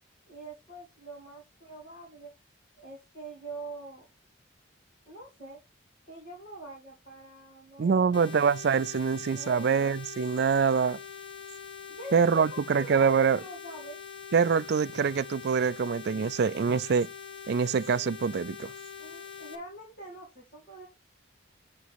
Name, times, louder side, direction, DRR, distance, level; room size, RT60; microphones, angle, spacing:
voice 1, 0.3-2.3 2.8-4.0 5.1-5.6 6.0-8.4 9.4-10.0 11.9-14.0 19.0-20.9, right 2 dB, 45° left, 3.0 m, -45 dB
voice 2, 7.8-11.0 12.1-13.4 14.3-17.1 17.5-18.7, right 6 dB, 55° right, 0.3 m, -25 dB
sound 1, 8.1-19.5, left 6 dB, 65° left, 1.6 m, -44 dB
8.0 x 4.7 x 4.1 m
head